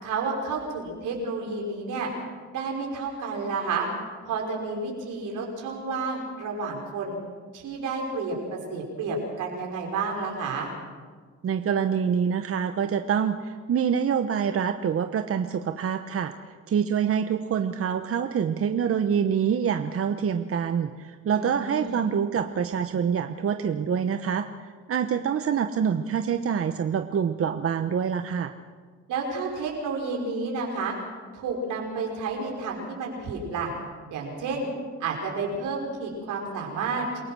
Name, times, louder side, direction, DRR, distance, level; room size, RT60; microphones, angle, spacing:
voice 1, 0.0-2.1 2.5-3.9 4.2-7.2 7.5-10.7 21.3-22.0 29.1-30.9 31.3-33.7 34.1-34.7 35.0-37.0, right 4 dB, 85° right, 0 dB, 5.6 m, -30 dB
voice 2, 11.4-16.3 16.7-24.5 24.9-28.5, right 7 dB, 50° right, 8 dB, 1.0 m, -26 dB
28.0 x 17.0 x 6.3 m, 1.5 s
cardioid pair, 90°, 30 cm